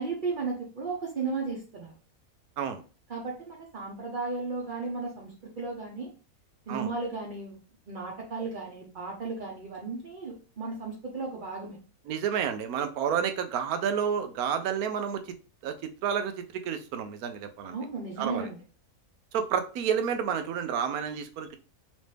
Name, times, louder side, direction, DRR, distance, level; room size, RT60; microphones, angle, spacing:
voice 1, 0.0-1.9 3.1-6.1 6.7-7.6 7.9-11.8 17.6-18.6, right 4 dB, 40° right, -3 dB, 0.8 m, -35 dB
voice 2, 12.1-15.2 15.6-15.8 16.0-17.8 18.2-18.5 19.3-21.6, right 8 dB, 90° right, 8 dB, 1.1 m, -30 dB
3.1 x 3.1 x 3.2 m, 0.36 s
omnidirectional pair, 1.5 m